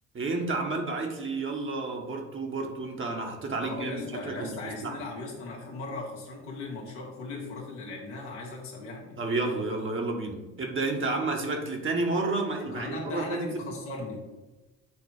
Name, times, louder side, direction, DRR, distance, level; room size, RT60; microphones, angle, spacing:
voice 1, 0.1-4.5 4.8-5.0 9.2-13.5, right 3 dB, 35° right, 1 dB, 1.5 m, -31 dB
voice 2, 3.6-9.2 12.6-14.2, left 2 dB, 80° left, -2 dB, 1.7 m, -37 dB
8.4 x 3.0 x 5.0 m, 1.2 s
hypercardioid pair, 50°, 34 cm